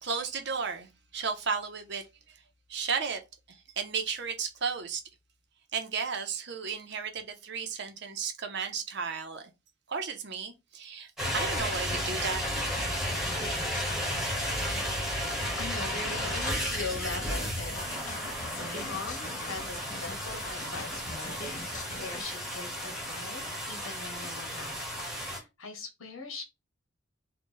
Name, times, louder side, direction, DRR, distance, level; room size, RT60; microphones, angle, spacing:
voice 1, 0.0-2.0 2.7-3.2 3.5-5.0 5.7-9.5 9.9-12.4, right 5 dB, 55° right, 0.7 m, -34 dB
sound 1, 11.2-25.4, equal, ahead, 1.2 m, -33 dB
sound 2, 11.6-22.2, left 2 dB, 40° left, 0.6 m, -43 dB
voice 2, 15.6-18.2 18.5-21.4 22.0-26.4, left 4 dB, 80° left, 1.2 m, -41 dB
3.8 x 2.3 x 3.8 m
head